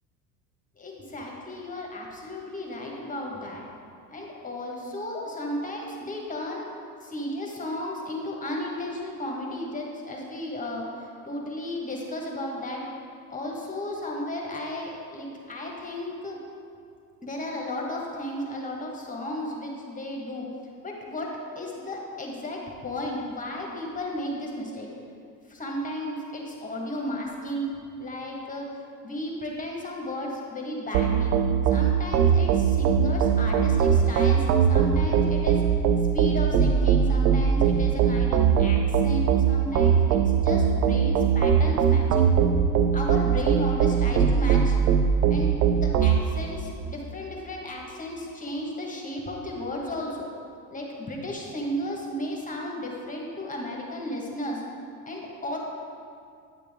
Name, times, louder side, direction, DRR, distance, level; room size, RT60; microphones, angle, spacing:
voice 1, 0.8-3.6 4.1-6.7 7.0-12.8 13.3-16.4 17.2-20.5 20.8-24.9 25.5-27.7 28.0-28.7 29.0-31.3 31.6-35.6 36.1-42.3 42.9-44.8 45.3-50.3 50.7-54.6 55.0-55.6, left 1 dB, 15° left, -2 dB, 1.5 m, -34 dB
sound 1, 30.9-46.2, right 7 dB, 85° right, 0.6 m, -21 dB
9.8 x 6.9 x 3.6 m, 2.3 s
hypercardioid pair, 75°, 47 cm